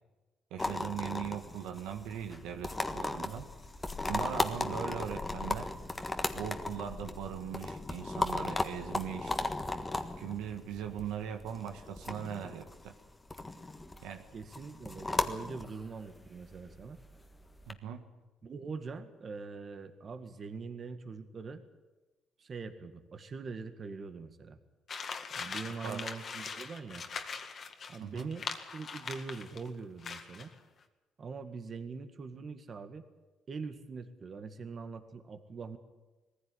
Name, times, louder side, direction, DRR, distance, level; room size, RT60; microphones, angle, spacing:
voice 1, 0.5-3.5 4.1-5.7 6.3-9.4 10.2-12.9 14.0-14.3 17.7-18.0 25.8-26.0 28.0-28.3, right 9 dB, 90° right, 5 dB, 1.6 m, -40 dB
sound 1, 0.6-17.7, left 2 dB, 15° left, 1.6 m, -37 dB
voice 2, 14.3-17.0 18.4-21.6 22.4-24.6 25.3-27.0 27.9-28.4 28.7-30.5 31.2-33.0 33.5-35.8, right 4 dB, 40° right, 8 dB, 1.9 m, -43 dB
sound 2, 24.9-29.7 30.0-30.5, left 5 dB, 45° left, 2.0 m, -41 dB
20.0 x 15.0 x 9.9 m, 1.1 s
cardioid pair, 100°, 0 cm